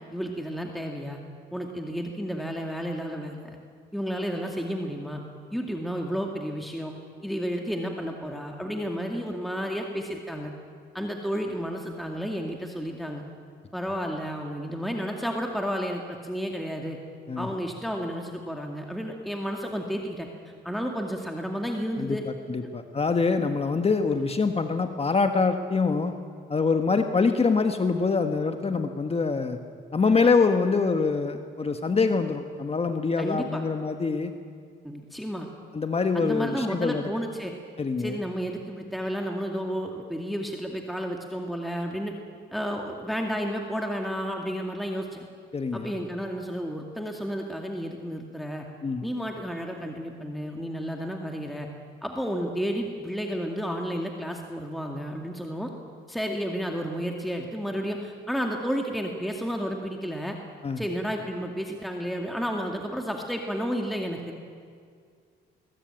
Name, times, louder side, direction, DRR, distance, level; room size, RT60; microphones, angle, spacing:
voice 1, 0.1-1.2 1.5-3.6 3.9-5.2 5.5-6.9 7.2-10.5 10.9-13.2 13.7-17.0 17.4-20.3 20.6-22.2 33.2-33.6 34.8-35.5 36.1-37.5 38.0-42.1 42.5-45.2 45.7-48.7 49.0-51.7 52.0-55.7 56.1-60.4 60.8-64.2, equal, ahead, 1 dB, 2.3 m, -31 dB
voice 2, 22.0-26.1 26.5-29.6 29.9-34.3 35.7-37.0 37.8-38.2 45.5-45.9 48.8-49.0 60.6-60.8, left 4 dB, 30° left, 6 dB, 1.4 m, -25 dB
21.5 x 20.0 x 9.2 m, 2.1 s
cardioid pair, 90°, 20 cm